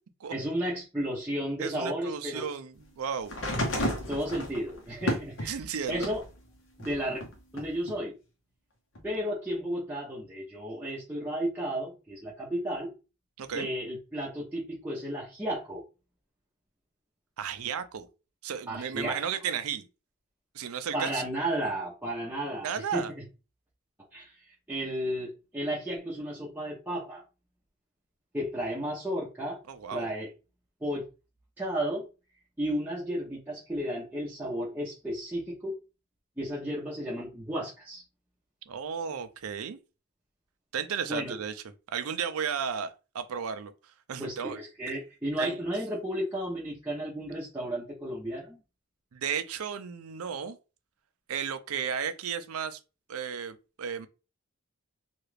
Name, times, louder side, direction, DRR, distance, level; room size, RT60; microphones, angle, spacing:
voice 1, 0.3-2.4 4.1-5.6 5.9-6.2 6.8-7.2 7.5-8.1 9.0-12.9 13.5-15.8 18.7-19.2 20.9-23.0 24.1-24.3 24.7-27.2 28.3-29.6 29.9-30.3 30.8-31.0 31.6-32.1 32.6-35.7 36.4-38.0 41.1-41.4 44.2-48.6, equal, 10° right, 0.7 m, -33 dB
voice 2, 1.6-3.3 5.4-6.1 13.4-13.7 17.4-18.1 18.4-19.8 20.5-21.2 22.6-23.1 29.7-30.1 38.7-39.8 40.7-41.6 41.9-44.6 45.4-45.6 49.1-50.6 51.3-52.8 53.1-54.1, right 7 dB, 80° right, 0.5 m, -34 dB
sound 1, 3.3-6.3 6.8-7.9 9.0-9.1, left 1 dB, 55° left, 0.8 m, -33 dB
2.9 x 2.4 x 3.2 m
head